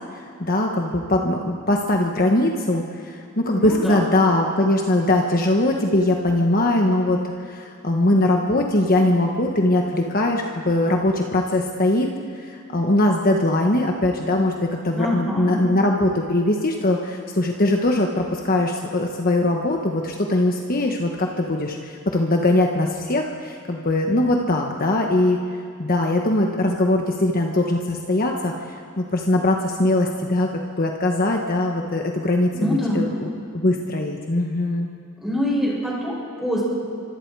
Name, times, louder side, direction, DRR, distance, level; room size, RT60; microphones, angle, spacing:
voice 1, 0.1-25.4 25.8-30.5 30.8-34.9, left 1 dB, 45° left, 2 dB, 1.3 m, -21 dB
voice 2, 3.5-4.0 14.9-15.6 32.5-33.1 35.2-36.6, left 1 dB, ahead, -5 dB, 7.3 m, -25 dB
28.5 x 25.0 x 4.8 m, 2.4 s
head